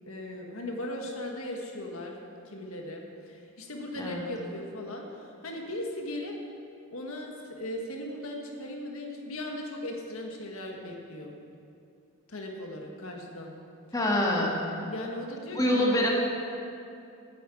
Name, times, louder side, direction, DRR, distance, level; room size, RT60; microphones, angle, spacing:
voice 1, 0.1-2.2 2.4-6.3 6.9-11.3 12.3-13.5 14.8-16.0, left 1 dB, 70° left, 1 dB, 1.6 m, -38 dB
voice 2, 13.9-14.6 15.5-16.1, left 1 dB, 15° left, -2 dB, 1.5 m, -25 dB
9.5 x 9.1 x 8.1 m, 2.5 s
head